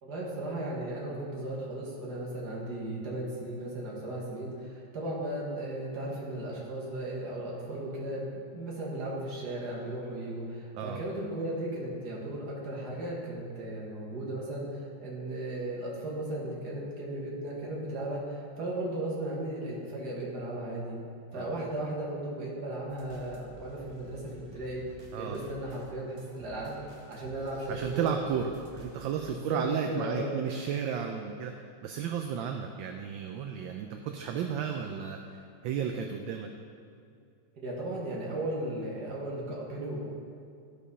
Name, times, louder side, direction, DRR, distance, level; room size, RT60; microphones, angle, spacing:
voice 1, 0.0-21.0 21.3-24.8 25.2-26.8 27.1-28.1 29.3-30.4 37.6-40.0, right 1 dB, 55° right, -4 dB, 2.3 m, -36 dB
sound 1, 22.9-29.3, right 2 dB, 20° right, 0.8 m, -53 dB
voice 2, 27.7-31.5 31.8-36.5, right 7 dB, 75° right, 4 dB, 1.3 m, -33 dB
12.5 x 5.2 x 5.5 m, 2.4 s
omnidirectional pair, 2.2 m